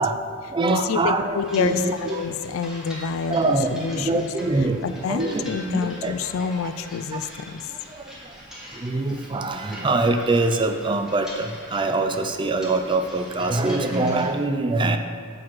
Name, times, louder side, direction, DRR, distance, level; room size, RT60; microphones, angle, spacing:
voice 1, 0.0-2.2 3.3-6.1 7.1-7.2 7.9-8.4 8.7-15.0, right 2 dB, 25° right, 7 dB, 0.4 m, -24 dB
voice 2, 0.7-4.3 4.8-7.7, left 6 dB, 75° left, 12 dB, 0.3 m, -28 dB
sound 1, 1.4-14.3, equal, 5° right, 1.4 m, -42 dB
7.6 x 4.6 x 6.1 m, 2.1 s
head